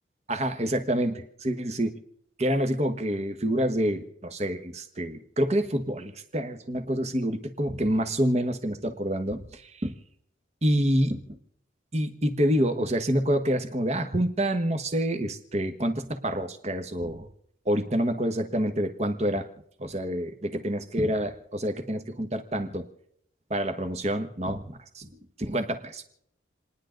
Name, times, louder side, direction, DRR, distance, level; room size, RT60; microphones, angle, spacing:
voice 1, 0.3-2.0 2.4-9.9 10.6-11.4 11.9-17.3 17.6-19.5 19.8-22.9 23.5-25.1 25.4-26.0, equal, 35° right, 7 dB, 1.3 m, -27 dB
29.5 x 10.0 x 3.9 m, 0.71 s
head